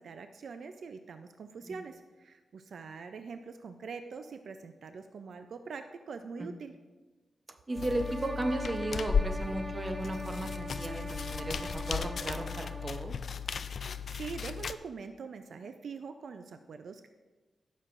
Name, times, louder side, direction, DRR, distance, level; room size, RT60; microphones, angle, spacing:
voice 1, 0.0-6.8 13.7-17.1, right 5 dB, 70° right, 8 dB, 0.5 m, -44 dB
sound 1, 7.7-13.1, right 1 dB, 10° right, 1.1 m, -42 dB
voice 2, 7.7-13.1, right 1 dB, 25° right, 5 dB, 0.8 m, -35 dB
sound 2, 7.8-14.7, left 6 dB, 60° left, 0.3 m, -35 dB
15.5 x 6.4 x 2.6 m, 1.3 s
wide cardioid pair, 125°, 0 cm